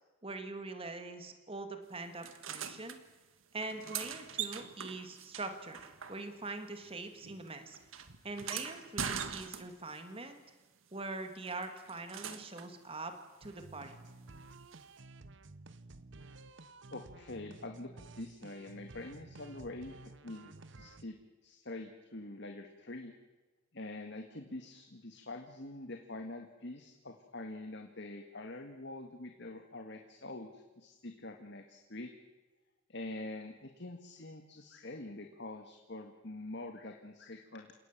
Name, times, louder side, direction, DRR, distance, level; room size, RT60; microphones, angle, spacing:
voice 1, 0.2-3.0 3.5-5.8 6.1-7.8 8.2-10.4 10.9-13.1 13.4-14.0, right 3 dB, 25° right, 7 dB, 2.1 m, -43 dB
sound 1, 2.2-3.0 3.6-6.6 6.8-10.0 11.5-12.7 14.7-14.8, right 7 dB, 75° right, 1.7 m, -42 dB
sound 2, 13.4-21.0, right 2 dB, 60° right, 1.0 m, -53 dB
voice 2, 16.9-17.9 18.2-19.9 20.2-21.2 21.4-23.1 23.7-32.1 32.9-37.7, left 2 dB, 55° left, 5 dB, 1.9 m, -45 dB
28.5 x 18.0 x 7.4 m, 1.2 s
head